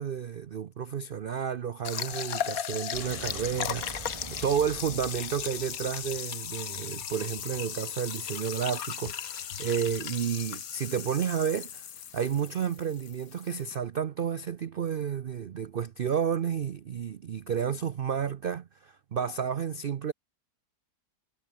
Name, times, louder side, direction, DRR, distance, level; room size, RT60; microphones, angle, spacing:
voice 1, 0.0-11.9 12.1-20.1, right 8 dB, 90° right, 0.4 m, -31 dB
sound 1, 1.8-13.8, left 9 dB, 60° left, 1.5 m, -37 dB
sound 2, 2.9-6.9, right 4 dB, 25° right, 0.9 m, -45 dB
omnidirectional pair, 1.8 m